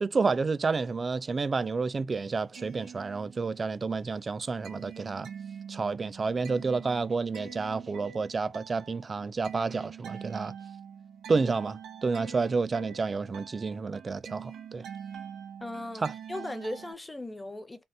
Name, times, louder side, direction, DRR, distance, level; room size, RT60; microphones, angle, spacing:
voice 1, 0.0-5.3 5.7-10.5 11.3-14.8 16.0-16.1, right 4 dB, 30° right, 0.3 m, -30 dB
sound 1, 2.5-3.8 4.1-16.9, right 8 dB, 75° right, 1.1 m, -45 dB
voice 2, 15.6-17.8, left 1 dB, 15° left, 0.6 m, -38 dB
3.4 x 2.1 x 2.6 m
cardioid pair, 90°, 0 cm